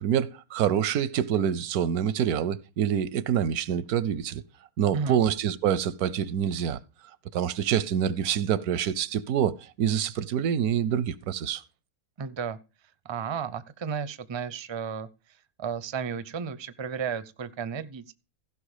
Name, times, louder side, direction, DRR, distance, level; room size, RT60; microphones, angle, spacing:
voice 1, 0.0-4.4 4.8-6.8 7.3-11.6, right 9 dB, 85° right, 1.3 m, -26 dB
voice 2, 4.8-5.2 12.2-12.6 13.0-15.1 15.6-18.1, right 6 dB, 30° right, 0.5 m, -33 dB
15.5 x 5.9 x 4.9 m
omnidirectional pair, 1.5 m